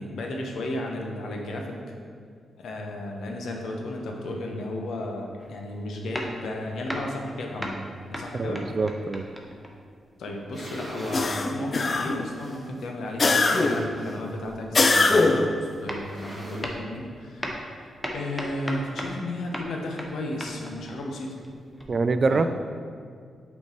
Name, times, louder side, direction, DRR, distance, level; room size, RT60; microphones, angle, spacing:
voice 1, 0.0-1.8 2.6-7.8 8.1-8.7 10.2-21.4 22.3-22.5, left 1 dB, 80° left, 1 dB, 0.9 m, -34 dB
sound 1, 5.4-5.7 6.1-7.3 7.6-10.0 15.5-15.6 15.9-16.3 16.6-17.0 17.4-19.3 19.5-21.9, equal, 5° left, 0.8 m, -37 dB
voice 2, 8.3-9.3 21.9-22.5, right 3 dB, 45° right, 10 dB, 0.3 m, -24 dB
sound 2, 10.3-11.3 12.0-12.1 13.0-14.1 14.4-14.7 14.9-15.0 15.9-17.0, right 1 dB, 20° right, 1.2 m, -40 dB
sound 3, 11.1-12.3 13.2-13.9 14.7-15.6, left 3 dB, 40° left, 0.4 m, -21 dB
5.7 x 4.4 x 4.5 m, 2.2 s
cardioid pair, 80°, 0 cm